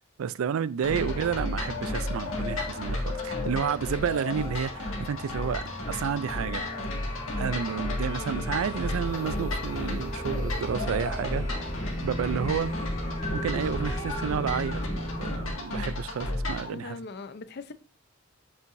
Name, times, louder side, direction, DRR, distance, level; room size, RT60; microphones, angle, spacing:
voice 1, 0.2-6.6 7.4-11.5 12.0-12.7 13.3-17.0, right 7 dB, 85° right, 0.4 m, -31 dB
sound 1, 0.8-16.7, left 1 dB, 75° left, 1.9 m, -33 dB
voice 2, 0.8-1.3 8.1-8.4 13.0-13.2 16.7-17.7, left 3 dB, 55° left, 0.6 m, -41 dB
sound 2, 0.9-15.5, left 1 dB, 35° left, 1.8 m, -36 dB
7.7 x 5.6 x 2.6 m
head